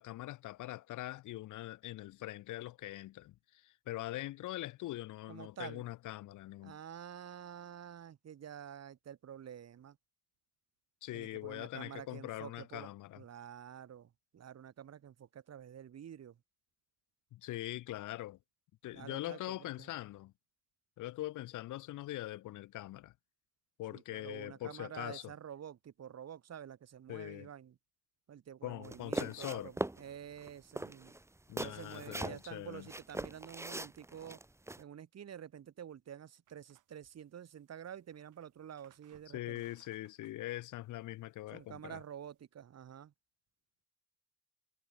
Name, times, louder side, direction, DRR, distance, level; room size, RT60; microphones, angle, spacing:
voice 1, 0.0-6.8 11.0-13.2 17.3-18.4 18.8-20.3 21.0-23.1 23.8-25.3 27.1-27.5 28.6-29.7 31.5-32.9 39.3-42.0, left 16 dB, 80° left, 0.9 m, -42 dB
voice 2, 5.3-5.8 6.6-10.0 11.1-16.4 18.9-19.9 23.9-27.8 28.3-31.1 31.6-34.4 34.8-39.6 41.5-43.1, right 9 dB, 60° right, 3.4 m, -49 dB
sound 1, 28.8-30.0 30.4-30.5 30.8-32.5 32.9-34.8, right 2 dB, 10° right, 1.3 m, -40 dB
sound 2, 36.5-42.4, right 14 dB, 85° right, 6.2 m, -71 dB
cardioid pair, 90°, 30 cm